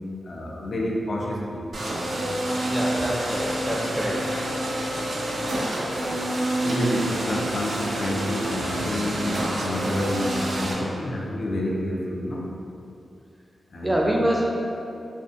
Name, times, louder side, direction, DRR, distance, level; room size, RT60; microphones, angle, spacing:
voice 1, 0.2-1.6 6.6-12.5 13.7-14.0, left 1 dB, 60° left, -2 dB, 0.4 m, -28 dB
sound 1, 1.7-10.7, right 1 dB, 75° right, 0.4 m, -28 dB
voice 2, 2.7-4.3 13.8-14.5, right 1 dB, 10° right, -2 dB, 0.4 m, -25 dB
2.5 x 2.5 x 2.4 m, 2.6 s
cardioid pair, 65°, 0 cm